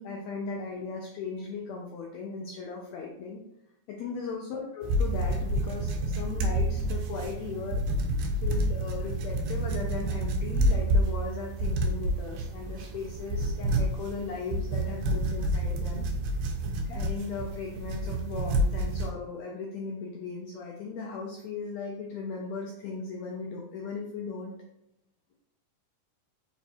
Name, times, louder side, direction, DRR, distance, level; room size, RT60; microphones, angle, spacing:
voice 1, 0.0-3.4 3.9-7.8 8.3-16.1 16.8-24.5, left 4 dB, 90° left, 0 dB, 1.5 m, -37 dB
sound 1, 4.8-19.1, right 1 dB, 80° right, 1.9 m, -29 dB
5.1 x 2.3 x 4.2 m, 0.84 s
omnidirectional pair, 3.8 m